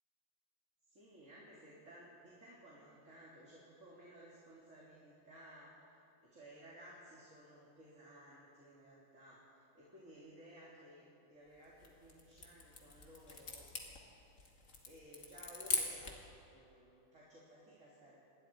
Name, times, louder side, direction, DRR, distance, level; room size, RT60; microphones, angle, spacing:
voice 1, 0.9-13.7 14.8-18.2, equal, 60° right, -6 dB, 3.5 m, -57 dB
sound 1, 11.6-16.3, left 3 dB, 65° left, 2.6 m, -43 dB
27.0 x 20.5 x 4.7 m, 2.7 s
omnidirectional pair, 1.4 m